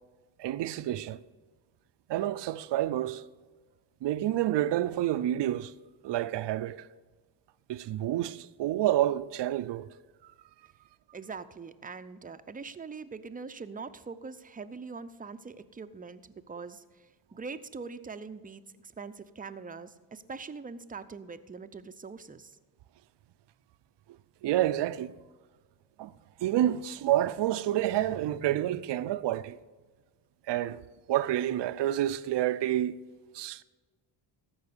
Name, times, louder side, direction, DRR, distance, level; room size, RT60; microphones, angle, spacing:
voice 1, 0.4-1.2 2.1-3.2 4.0-5.7 6.0-6.9 7.7-9.9 24.4-25.1 26.0-26.1 26.4-29.6 30.5-30.8 31.1-33.0 33.3-33.6, right 13 dB, 60° right, 0.6 m, -29 dB
voice 2, 11.1-22.6, right 4 dB, 15° right, 0.6 m, -43 dB
14.0 x 5.5 x 6.7 m
cardioid pair, 75°, 49 cm